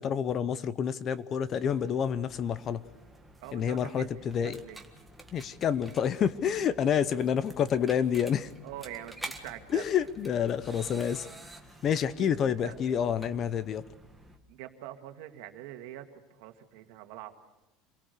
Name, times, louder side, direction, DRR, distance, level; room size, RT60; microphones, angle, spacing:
voice 1, 0.0-2.8 3.5-4.6 5.3-8.5 9.7-11.3 11.8-13.8, left 8 dB, 30° left, 16 dB, 0.7 m, -28 dB
sound 1, 1.5-14.4, right 1 dB, ahead, 1.6 m, -49 dB
voice 2, 3.4-4.8 8.6-9.8 12.2-12.3 12.6-12.8 14.5-17.3, right 13 dB, 65° right, 6 dB, 2.0 m, -44 dB
26.5 x 18.0 x 6.7 m, 0.99 s
supercardioid pair, 150°, 0 cm